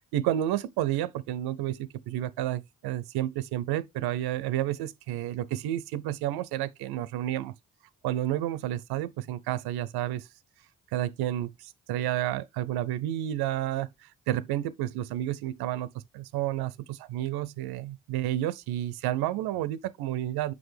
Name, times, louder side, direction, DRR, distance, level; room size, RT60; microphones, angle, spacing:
voice 1, 0.1-7.5 8.0-10.3 10.9-20.5, right 13 dB, 85° right, 0.5 m, -31 dB
6.0 x 4.8 x 3.2 m
supercardioid pair, 45°, 37 cm